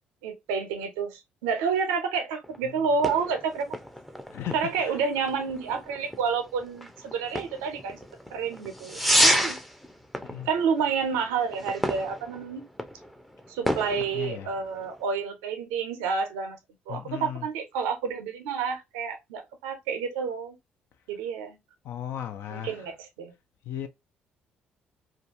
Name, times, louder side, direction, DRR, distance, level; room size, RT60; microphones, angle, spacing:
voice 1, 0.2-3.7 4.5-8.0 8.3-9.6 10.5-12.7 13.5-16.6 16.9-20.6 21.1-21.6 22.5-23.3, right 5 dB, 85° right, 0.6 m, -29 dB
sound 1, 2.4-15.0, equal, ahead, 0.5 m, -31 dB
voice 2, 4.3-5.0 10.2-10.5 14.1-14.5 16.9-17.5 21.8-22.9 23.7-23.9, left 10 dB, 70° left, 0.4 m, -36 dB
2.4 x 2.3 x 2.6 m
hypercardioid pair, 55°, 4 cm